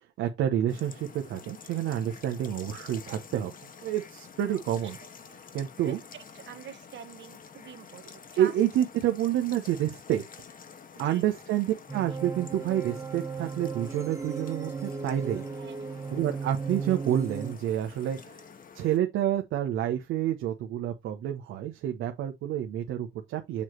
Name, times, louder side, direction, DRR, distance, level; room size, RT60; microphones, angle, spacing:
voice 1, 0.2-5.0 5.5-6.0 8.4-10.2 11.0-15.5 16.1-18.4 18.7-23.6, right 11 dB, 85° right, 1.1 m, -29 dB
sound 1, 0.7-19.0, left 6 dB, 45° left, 1.3 m, -49 dB
voice 2, 6.5-8.0 8.3-8.5 10.9-11.3 15.5-15.9, right 9 dB, 65° right, 1.5 m, -44 dB
sound 2, 11.9-17.5, right 5 dB, 15° right, 1.0 m, -36 dB
7.3 x 3.2 x 5.9 m
cardioid pair, 90°, 20 cm